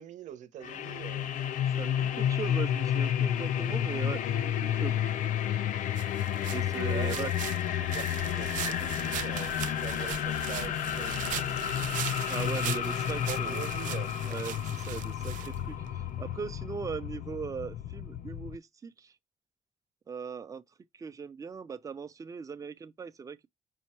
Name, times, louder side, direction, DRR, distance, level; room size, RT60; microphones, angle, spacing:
voice 1, 0.0-1.3 6.8-11.7 12.6-12.9 13.3-14.1, right 10 dB, 70° right, 0.9 m, -44 dB
sound 1, 0.6-18.6, left 10 dB, 80° left, 0.5 m, -31 dB
voice 2, 1.8-5.0 6.5-7.3 12.3-13.6 14.2-14.6 14.9-19.1 20.1-20.6 20.9-23.5, right 5 dB, 25° right, 0.5 m, -39 dB
Pasos Vaca, 5.9-16.0, right 13 dB, 90° right, 0.4 m, -40 dB
5.5 x 2.2 x 4.3 m
cardioid pair, 145°, 13 cm